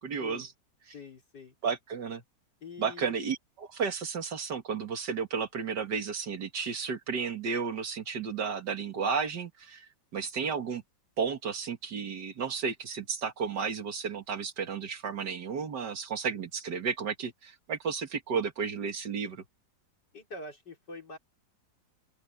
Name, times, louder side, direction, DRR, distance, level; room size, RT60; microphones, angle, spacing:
voice 1, 0.0-0.5 1.6-2.2 2.8-10.8 11.2-19.4, right 6 dB, 70° right, 2.4 m, -33 dB
voice 2, 0.9-1.5 2.6-3.2 20.1-21.2, left 3 dB, 70° left, 5.2 m, -45 dB
open air
omnidirectional pair, 1.9 m